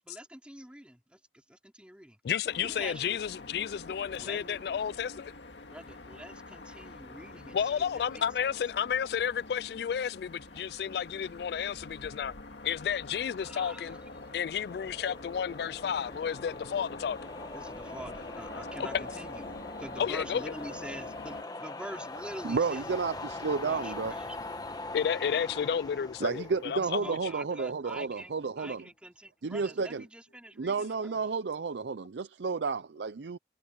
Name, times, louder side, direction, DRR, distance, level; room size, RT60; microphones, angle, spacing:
voice 1, 0.0-2.2 2.6-3.3 4.2-4.9 5.7-8.6 13.4-14.1 17.5-24.8 27.0-31.3, right 1 dB, 5° right, 3.0 m, -46 dB
voice 2, 2.2-5.3 7.5-12.3 12.6-13.9 14.3-17.2 18.8-19.0 20.0-20.5 24.9-27.2, left 8 dB, 60° left, 0.3 m, -32 dB
sound 1, 2.5-21.4, left 3 dB, 80° left, 2.0 m, -46 dB
sound 2, 7.2-14.3, left 1 dB, 35° left, 4.3 m, -62 dB
sound 3, 13.4-27.7, left 2 dB, 20° left, 1.2 m, -43 dB
voice 3, 22.4-24.1 26.2-28.8 29.4-30.0 30.6-33.4, right 4 dB, 75° right, 0.5 m, -31 dB
head